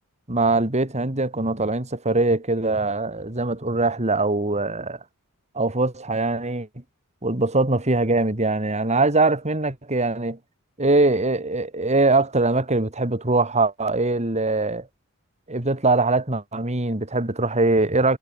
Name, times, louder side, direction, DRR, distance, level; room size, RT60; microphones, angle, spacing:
voice 1, 0.3-5.0 5.5-6.7 7.2-10.4 10.8-14.9 15.5-18.2, right 2 dB, 30° right, 2.5 m, -22 dB
head